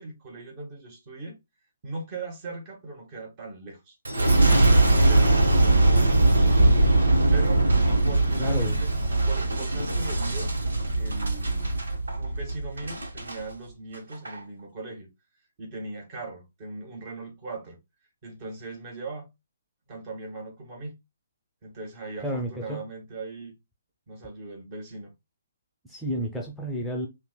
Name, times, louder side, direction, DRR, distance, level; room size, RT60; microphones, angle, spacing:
voice 1, 0.0-1.4 1.8-4.0 4.4-6.5 7.3-10.6 10.9-11.8 12.1-15.1 15.6-17.8 18.2-19.3 19.9-20.9 21.6-23.5 24.1-25.1, right 2 dB, 35° right, 1.7 m, -39 dB
Boom, 4.0-13.4 13.9-14.4, right 2 dB, 85° right, 1.4 m, -21 dB
voice 2, 8.4-8.8 9.0-9.1 22.2-22.8 25.8-27.1, equal, ahead, 0.8 m, -31 dB
5.7 x 2.6 x 2.2 m
hypercardioid pair, 145°, 0 cm